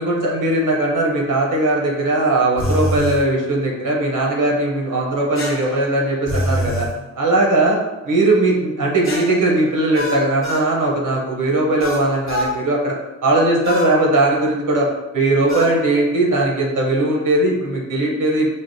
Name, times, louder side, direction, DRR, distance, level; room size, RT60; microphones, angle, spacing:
voice 1, 0.0-6.8 7.2-7.8 8.1-12.9 13.2-14.9 15.1-18.5, right 2 dB, 80° right, -2 dB, 0.7 m, -19 dB
sound 1, 2.6-3.2 5.4-6.9 9.0-10.7 11.8-12.5 13.6-13.9 15.5-15.8, equal, 45° left, 0.6 m, -25 dB
3.2 x 2.0 x 2.5 m, 1.1 s
wide cardioid pair, 85°, 31 cm